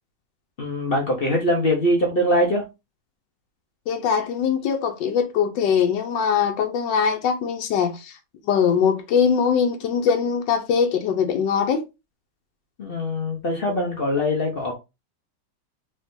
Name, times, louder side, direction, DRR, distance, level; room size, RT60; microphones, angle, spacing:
voice 1, 0.6-2.7 12.8-14.7, left 1 dB, 45° left, 0.7 m, -22 dB
voice 2, 3.9-8.1 8.5-11.8, left 7 dB, 85° left, 1.3 m, -22 dB
3.7 x 3.2 x 2.6 m
omnidirectional pair, 1.9 m